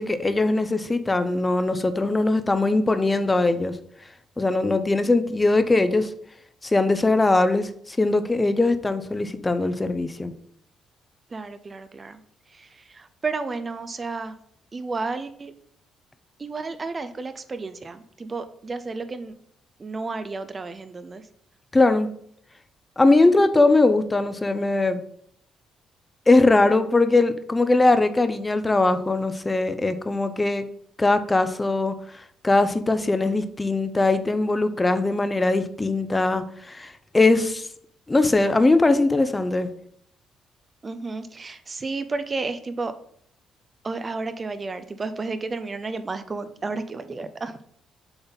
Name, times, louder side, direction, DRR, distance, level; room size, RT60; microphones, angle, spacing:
voice 1, 0.0-3.8 4.4-6.1 6.6-10.3 21.7-22.1 23.0-25.0 26.3-30.7 31.0-31.9 32.4-37.7 38.1-39.7, left 2 dB, 20° left, 11 dB, 0.6 m, -21 dB
voice 2, 11.3-12.2 12.5-14.4 14.7-15.5 16.4-19.3 19.8-21.3 23.2-23.4 37.3-37.5 40.8-42.9 43.8-47.6, right 3 dB, 30° right, 11 dB, 0.5 m, -32 dB
6.8 x 3.9 x 4.0 m, 0.66 s
cardioid pair, 90°, 0 cm